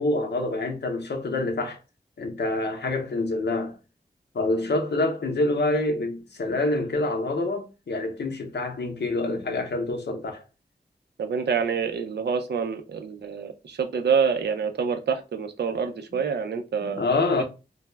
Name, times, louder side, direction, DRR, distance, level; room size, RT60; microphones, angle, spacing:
voice 1, 0.0-1.8 2.2-3.8 4.3-10.4 16.8-17.4, left 2 dB, 90° left, 0.6 m, -26 dB
voice 2, 11.2-17.0, right 6 dB, 90° right, 0.4 m, -27 dB
2.3 x 2.0 x 3.1 m
wide cardioid pair, 70°, 17 cm